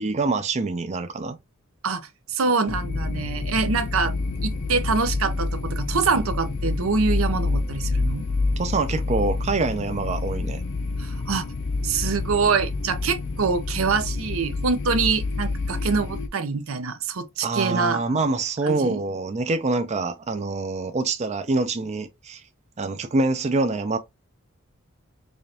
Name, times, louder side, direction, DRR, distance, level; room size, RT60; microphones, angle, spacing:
voice 1, 0.0-1.4 8.6-10.6 17.4-22.4 22.8-24.0, right 3 dB, 35° right, 0.5 m, -25 dB
voice 2, 1.8-4.1 4.4-8.3 11.0-11.5 11.8-18.0 18.6-19.0, right 4 dB, 75° right, 0.7 m, -25 dB
sound 1, 2.7-16.3, left 3 dB, 65° left, 0.7 m, -28 dB
4.9 x 2.5 x 2.8 m
head